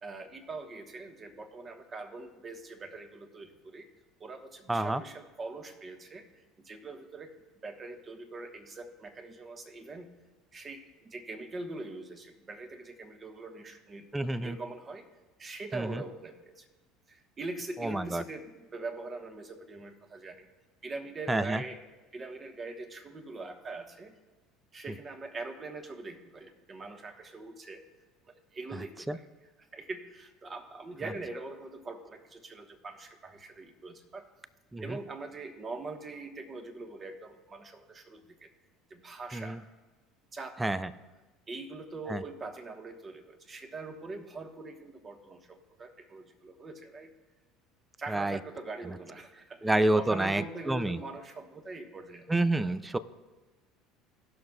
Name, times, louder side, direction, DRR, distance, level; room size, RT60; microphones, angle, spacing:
voice 1, 0.0-3.9 4.2-7.3 7.6-10.1 10.5-15.1 15.4-16.7 17.1-20.5 20.8-21.8 22.1-24.1 24.7-27.8 28.3-29.3 29.7-34.3 34.8-38.5 38.9-39.6 40.3-40.8 41.5-47.1 48.0-52.3, right 3 dB, 30° right, 5 dB, 1.3 m, -43 dB
voice 2, 4.7-5.0 14.1-14.6 15.7-16.0 17.8-18.2 21.3-21.6 29.1-29.2 34.7-35.0 39.3-39.6 40.6-40.9 42.1-42.2 48.1-48.4 49.6-51.0 52.3-53.0, right 2 dB, 10° right, 15 dB, 0.4 m, -28 dB
19.0 x 6.4 x 2.4 m, 1.2 s
hypercardioid pair, 70°, 0 cm